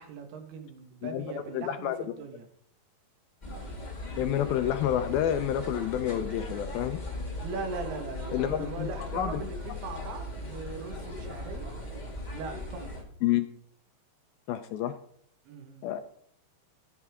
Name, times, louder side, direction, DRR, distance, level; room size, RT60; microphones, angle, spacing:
voice 1, 0.0-2.5 7.4-11.8 12.3-13.1 15.5-15.9, right 4 dB, 70° right, 6 dB, 3.4 m, -40 dB
voice 2, 1.5-2.0 4.2-7.0 8.3-8.9 9.1-9.4 13.2-13.5 14.5-14.9 15.8-16.0, left 11 dB, 80° left, 9 dB, 2.2 m, -29 dB
sound 1, 3.4-13.0, left 1 dB, 35° left, 0.7 m, -38 dB
16.0 x 9.4 x 3.6 m, 0.64 s
omnidirectional pair, 5.0 m